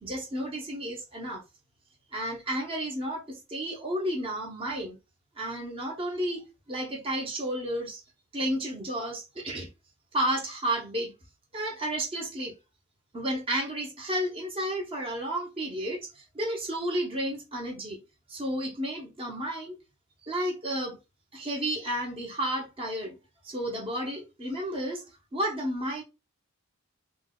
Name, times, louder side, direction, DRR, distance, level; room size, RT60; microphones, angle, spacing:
voice 1, 0.0-1.4 2.1-5.0 5.4-8.0 8.3-9.7 10.1-11.1 11.5-12.5 13.1-18.0 18.3-19.8 20.3-21.0 21.3-23.2 23.4-25.0 25.3-26.0, right 1 dB, 25° right, 0.7 m, -32 dB
3.9 x 2.1 x 2.2 m
head